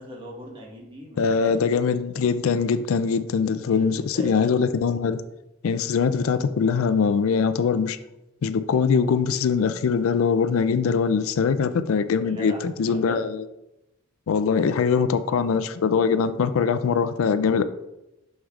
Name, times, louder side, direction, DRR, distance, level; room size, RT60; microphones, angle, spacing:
voice 1, 0.0-1.5 3.7-4.3 12.2-13.2, equal, 25° right, 1.3 m, -39 dB
voice 2, 1.2-5.2 5.6-8.0 8.4-13.4 14.3-17.6, left 5 dB, 75° left, 0.4 m, -22 dB
6.4 x 6.3 x 2.4 m
head